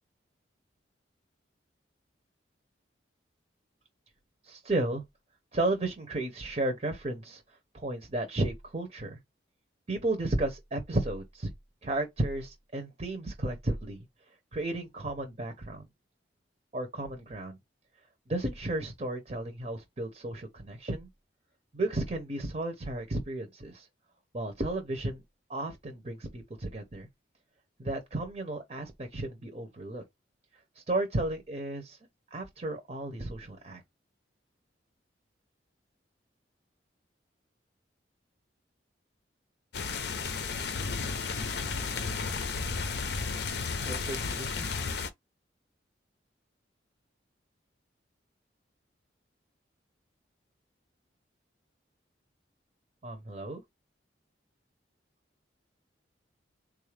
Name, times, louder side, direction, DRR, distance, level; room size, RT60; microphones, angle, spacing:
voice 1, 4.4-5.0 5.5-7.4 7.7-9.2 9.9-11.5 11.8-14.0 14.5-15.9 16.7-17.6 18.3-21.1 21.7-23.9 24.3-25.2 25.5-27.1 27.8-30.0 30.7-32.0 32.3-33.8 43.9-44.7 53.0-53.6, right 2 dB, 35° right, 0.7 m, -33 dB
sound 1, 39.7-45.1, left 4 dB, 60° left, 0.6 m, -33 dB
3.7 x 2.4 x 3.2 m
head